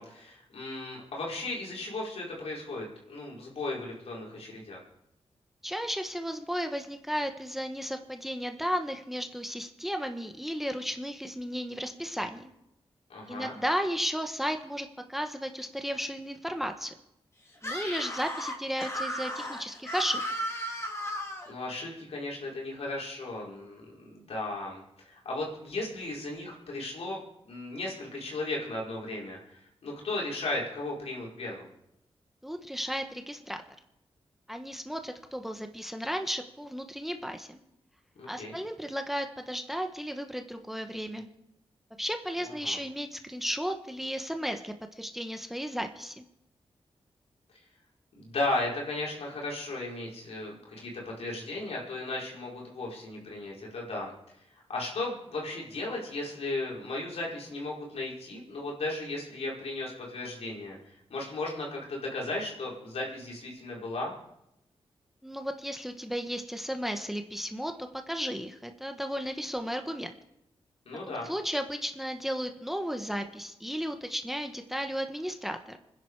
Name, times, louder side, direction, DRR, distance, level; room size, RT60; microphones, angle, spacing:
voice 1, 0.0-4.8 13.1-13.5 21.5-27.2 27.5-31.6 38.2-38.6 42.4-42.8 48.2-54.1 54.5-64.1 70.9-71.3, left 2 dB, 80° left, -3 dB, 5.3 m, -36 dB
voice 2, 5.6-12.5 13.3-16.9 17.6-20.2 32.4-33.6 34.5-37.6 38.3-41.3 42.0-46.2 65.2-70.1 71.1-75.8, equal, ahead, 6 dB, 1.4 m, -34 dB
Screaming, 17.6-21.5, equal, 25° left, 3.5 m, -35 dB
26.0 x 10.5 x 4.9 m, 0.82 s
wide cardioid pair, 85°, 10 cm